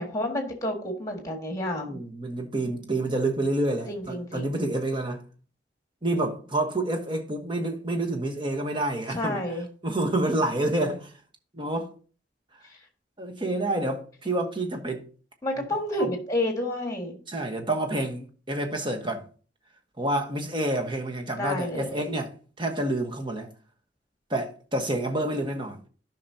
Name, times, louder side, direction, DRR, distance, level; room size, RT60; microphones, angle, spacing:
voice 1, 0.0-2.0 3.9-4.6 9.1-9.7 15.4-17.2 21.4-22.1, left 1 dB, 20° left, 1.7 m, -30 dB
voice 2, 1.7-5.2 6.0-9.4 9.8-11.1 11.5-11.9 13.2-15.0 16.0-16.1 17.3-19.2 20.0-22.3 22.6-23.5 24.3-25.8, right 1 dB, 25° right, 1.1 m, -28 dB
12.0 x 5.8 x 2.7 m
head